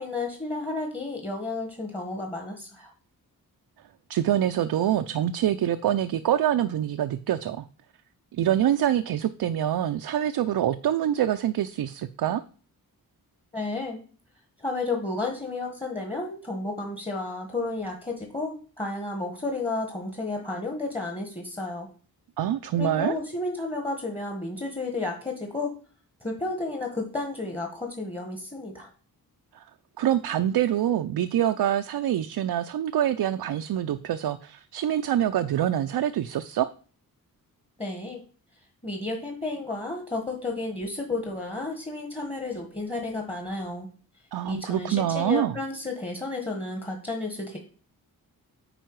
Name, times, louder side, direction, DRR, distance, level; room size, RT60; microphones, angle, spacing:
voice 1, 0.0-2.9 13.5-14.0 14.6-21.9 22.8-25.7 26.2-28.9 37.8-38.2 38.8-43.9 44.4-47.6, left 2 dB, 15° left, 2 dB, 1.4 m, -32 dB
voice 2, 4.1-7.7 8.3-12.4 22.4-23.2 29.5-29.6 30.0-36.7 44.3-45.6, right 11 dB, 80° right, 9 dB, 0.5 m, -25 dB
9.0 x 4.6 x 4.7 m, 0.39 s
wide cardioid pair, 105°, 37 cm